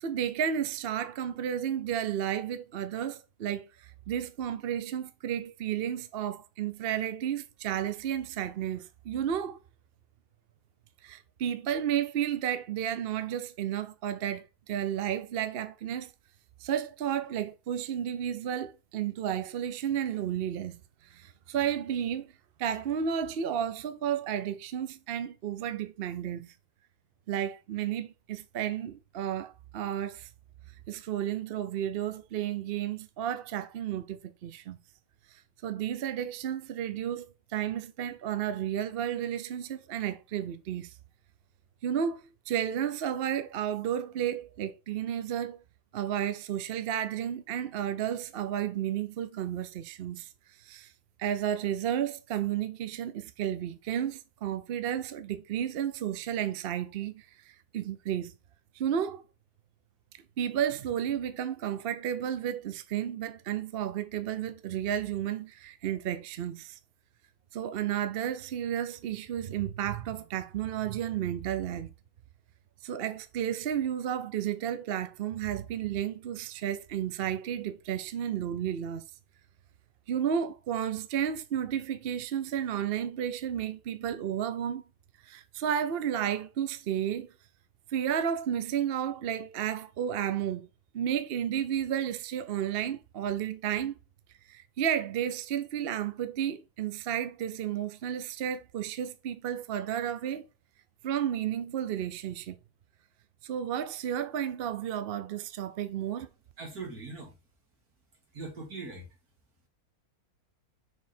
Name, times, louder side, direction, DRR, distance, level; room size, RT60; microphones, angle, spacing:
voice 1, 0.0-9.6 11.0-16.1 16.6-22.3 22.6-26.5 27.3-30.3 30.9-34.8 35.6-40.9 41.8-42.2 42.5-45.6 45.9-50.3 50.6-50.9 51.2-58.3 58.8-59.2 60.4-66.8 67.5-71.9 72.8-79.0 80.1-84.8 85.2-87.3 87.9-90.7 90.9-94.0 94.5-100.5 101.0-102.6 103.4-106.3, right 9 dB, 55° right, 0.7 m, -32 dB
voice 2, 106.6-107.4 108.3-109.2, right 3 dB, 80° right, 2.5 m, -41 dB
6.3 x 3.7 x 4.3 m
omnidirectional pair, 1.6 m